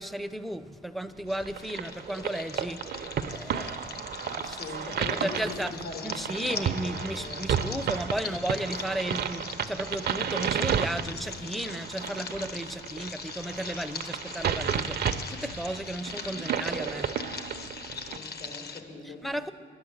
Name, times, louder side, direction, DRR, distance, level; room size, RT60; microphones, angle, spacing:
voice 1, 0.0-2.8 3.3-4.6 5.0-5.7 6.0-15.0 15.3-17.1 19.0-19.5, right 1 dB, ahead, 10 dB, 0.5 m, -34 dB
sound 1, 1.3-18.8, left 5 dB, 55° left, 1.0 m, -41 dB
sound 2, 1.4-18.2, right 8 dB, 55° right, 0.6 m, -33 dB
voice 2, 4.5-6.1 6.5-7.8 8.2-8.4 18.1-19.2, left 3 dB, 90° left, -1 dB, 3.5 m, -41 dB
10.5 x 7.8 x 9.8 m, 2.4 s
cardioid pair, 90°, 20 cm